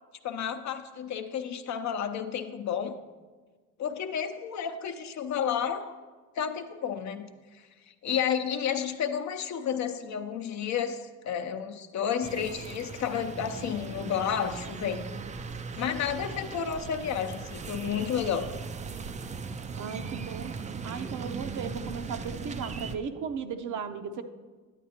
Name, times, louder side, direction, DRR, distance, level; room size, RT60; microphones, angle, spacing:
voice 1, 0.2-3.0 3.8-6.0 6.4-7.3 8.0-15.1 15.8-18.5, left 8 dB, 55° left, 8 dB, 0.7 m, -31 dB
sound 1, 12.2-23.0, right 5 dB, 20° right, 0.3 m, -38 dB
voice 2, 19.8-20.6 20.8-24.2, right 6 dB, 60° right, 8 dB, 0.7 m, -36 dB
10.0 x 8.3 x 2.9 m, 1.4 s
cardioid pair, 90°, 35 cm